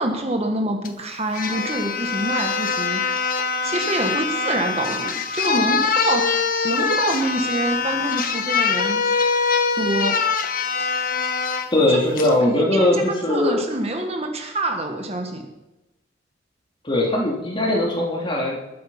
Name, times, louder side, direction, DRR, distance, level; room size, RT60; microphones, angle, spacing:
voice 1, 0.0-3.3 3.6-6.3 6.6-9.1 9.8-10.2 11.9-12.0 12.4-13.0 13.3-15.5, right 1 dB, 35° right, 4 dB, 1.5 m, -26 dB
sound 1, 0.8-0.9 1.3-11.7 12.2-12.3, left 5 dB, 45° left, 1.1 m, -23 dB
voice 2, 11.7-13.6 16.8-18.6, left 1 dB, 25° left, -2 dB, 3.0 m, -20 dB
21.0 x 8.6 x 5.7 m, 1.0 s
head